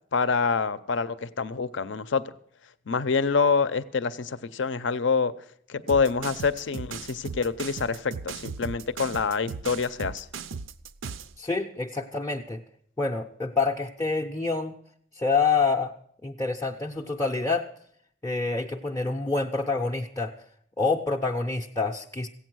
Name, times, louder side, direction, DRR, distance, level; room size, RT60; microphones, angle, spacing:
voice 1, 0.1-2.2 2.9-5.3 5.7-10.3, left 5 dB, 65° left, 15 dB, 0.6 m, -26 dB
sound 1, 5.9-11.3, right 5 dB, 80° right, 0.5 m, -37 dB
voice 2, 11.4-12.6 13.0-14.7 15.1-15.9 16.2-17.7 18.2-20.3 20.8-22.3, left 4 dB, 15° left, 0 dB, 0.5 m, -27 dB
15.5 x 8.5 x 6.2 m, 0.65 s
head